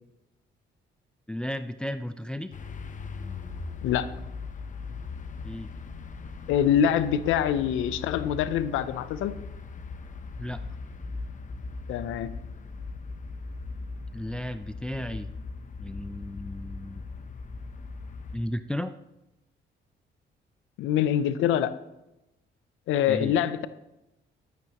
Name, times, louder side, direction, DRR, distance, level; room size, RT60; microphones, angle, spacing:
voice 1, 1.3-2.5 5.4-5.7 10.4-10.6 14.1-15.3 15.8-17.0 18.3-18.9 23.1-23.3, left 1 dB, 5° left, 10 dB, 0.4 m, -34 dB
sound 1, 2.5-18.4, left 4 dB, 40° left, 0.8 m, -39 dB
voice 2, 6.5-9.4 11.9-12.3 20.8-21.7 22.9-23.7, left 9 dB, 90° left, 13 dB, 0.6 m, -25 dB
12.0 x 9.2 x 3.0 m, 0.92 s
cardioid pair, 90°, 20 cm